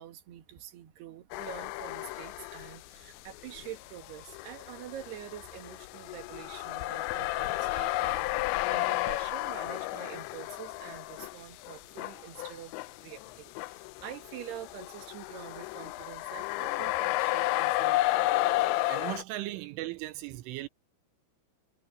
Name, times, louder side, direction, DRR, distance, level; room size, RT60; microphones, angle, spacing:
voice 1, 0.0-8.3 8.7-12.7 13.0-18.1, right 11 dB, 60° right, 3.7 m, -46 dB
sound 1, 1.3-2.8 3.2-19.2, left 18 dB, 80° left, 2.7 m, -32 dB
voice 2, 18.9-20.7, right 16 dB, 80° right, 3.3 m, -37 dB
omnidirectional pair, 5.8 m